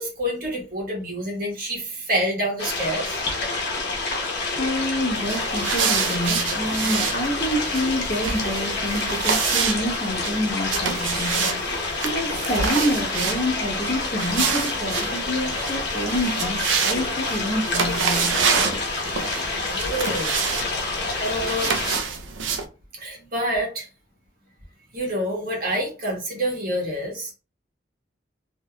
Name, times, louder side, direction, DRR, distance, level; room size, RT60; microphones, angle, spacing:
voice 1, 0.0-3.2 19.6-20.3 20.7-20.9 21.2-21.7 22.9-23.9 24.9-27.3, equal, 50° right, 1.2 m, -27 dB
sound 1, 2.6-22.0, left 3 dB, 65° left, 1.0 m, -28 dB
voice 2, 4.6-11.6 11.9-18.4 23.2-23.3, equal, 35° left, 1.0 m, -27 dB
sound 2, 5.1-22.6, right 6 dB, 85° right, 0.5 m, -28 dB
3.3 x 2.8 x 2.2 m
head